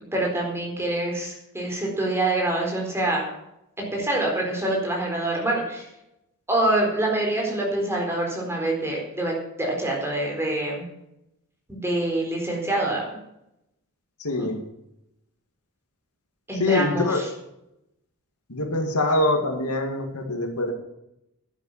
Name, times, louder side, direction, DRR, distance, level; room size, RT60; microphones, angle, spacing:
voice 1, 0.1-3.2 3.9-5.8 6.5-10.9 11.7-13.1 14.4-14.5 16.5-17.3, right 1 dB, 10° right, -1 dB, 4.1 m, -25 dB
voice 2, 14.2-14.6 16.5-17.2 18.5-20.7, left 2 dB, 90° left, 4 dB, 2.3 m, -24 dB
10.5 x 9.2 x 7.3 m, 0.84 s
head